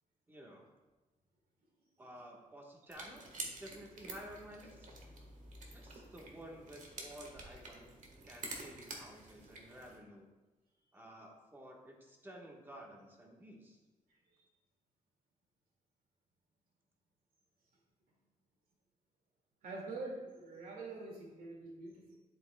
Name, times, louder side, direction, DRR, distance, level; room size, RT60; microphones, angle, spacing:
voice 1, 0.3-0.6 2.0-4.9 5.7-7.9 8.2-10.3 10.9-13.8, equal, 15° right, -1 dB, 1.3 m, -53 dB
sound 1, 2.9-10.0, right 2 dB, 60° right, 1.4 m, -49 dB
voice 2, 19.6-22.2, right 3 dB, 80° right, -2 dB, 2.1 m, -45 dB
10.5 x 8.1 x 2.2 m, 1.2 s
wide cardioid pair, 165°, 15 cm